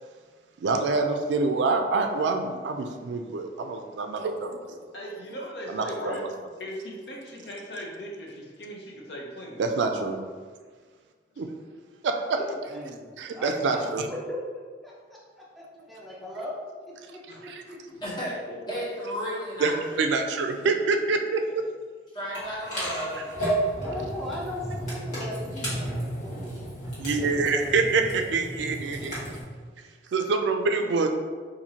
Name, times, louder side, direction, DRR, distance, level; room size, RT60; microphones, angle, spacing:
voice 1, 0.6-4.9 5.7-6.3 9.6-10.2 11.4-11.5 12.0-12.4 13.4-14.1 17.5-17.6 19.6-21.4 23.1-23.3 27.0-29.4 30.1-31.1, right 4 dB, 75° right, 5 dB, 0.4 m, -26 dB
voice 2, 4.9-6.2 6.6-9.6 17.3-17.4, equal, 65° left, -2 dB, 0.7 m, -38 dB
voice 3, 12.4-13.0 13.3-16.6 17.1-17.5 23.8-26.6 27.4-28.0, left 1 dB, ahead, -6 dB, 0.6 m, -38 dB
voice 4, 18.0-20.2 20.6-20.7 22.1-23.3 23.6-23.7, equal, 25° left, -7 dB, 1.0 m, -34 dB
sound 1, 22.3-29.4, right 1 dB, 45° left, 1.4 m, -32 dB
4.2 x 2.6 x 2.8 m, 1.5 s
head